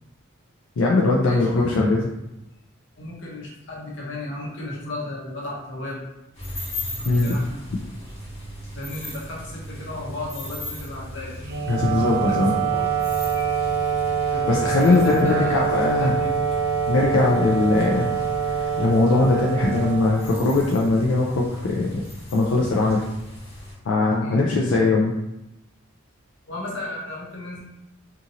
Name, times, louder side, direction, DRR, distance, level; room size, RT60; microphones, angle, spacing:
voice 1, 0.8-2.1 7.1-7.4 11.7-12.5 14.5-16.2 16.9-18.1 18.5-22.0 22.3-23.0 23.9-25.1, left 3 dB, 85° left, -3 dB, 0.4 m, -20 dB
voice 2, 1.3-1.9 2.9-6.0 7.0-7.6 8.7-11.3 11.9-12.9 14.3-16.3 24.2-24.4 26.5-27.6, left 1 dB, 65° left, -4 dB, 0.9 m, -34 dB
sound 1, 6.3-23.7, equal, 30° left, 1.0 m, -37 dB
Wind instrument woodwind instrument, 11.4-20.7, right 7 dB, 50° right, 0.3 m, -25 dB
2.6 x 2.5 x 2.8 m, 0.91 s
head